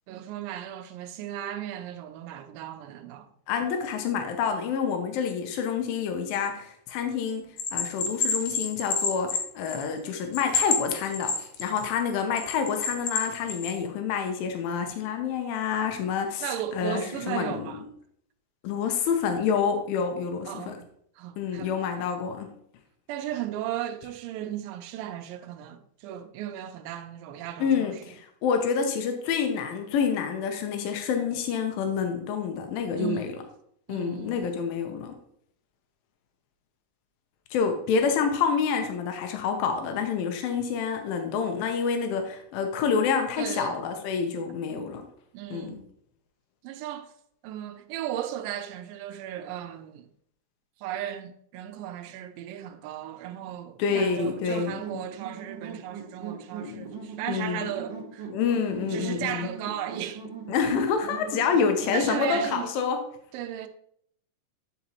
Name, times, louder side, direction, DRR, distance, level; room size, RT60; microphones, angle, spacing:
voice 1, 0.1-3.3 16.4-17.8 20.5-20.9 21.2-21.7 22.0-22.1 23.1-27.9 33.0-33.3 33.9-34.4 43.4-43.8 45.3-45.8 46.6-47.1 47.4-50.1 50.8-58.3 58.9-60.2 61.9-62.7 63.3-63.7, right 11 dB, 85° right, 2.4 m, -35 dB
voice 2, 3.5-7.5 7.7-17.8 18.6-20.8 21.4-22.5 27.6-33.4 33.9-35.1 37.5-45.1 45.5-45.8 53.8-54.8 56.6-56.9 57.3-57.7 58.3-59.5 60.5-63.0, left 6 dB, 90° left, 2.6 m, -28 dB
Bell, 7.6-10.0 10.3-11.9 12.4-13.7, left 5 dB, 70° left, 2.3 m, -28 dB
sound 1, 53.9-62.6, right 6 dB, 70° right, 1.1 m, -40 dB
9.6 x 5.0 x 2.9 m
omnidirectional pair, 4.0 m